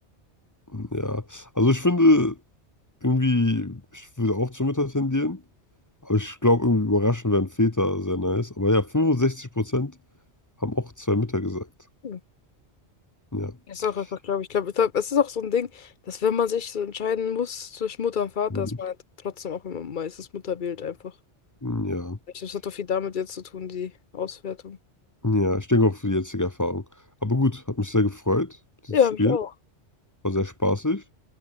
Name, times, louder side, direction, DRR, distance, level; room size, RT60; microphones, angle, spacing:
voice 1, 0.7-2.4 3.0-5.4 6.0-9.9 10.6-11.7 13.3-13.5 18.5-18.8 21.6-22.2 25.2-26.8 27.2-28.6 28.9-29.4 30.2-31.0, left 2 dB, 20° left, 0.7 m, -23 dB
voice 2, 13.7-19.0 19.2-21.0 22.3-24.8 28.9-29.5, left 7 dB, 50° left, 1.0 m, -27 dB
omnidirectional pair, 1.2 m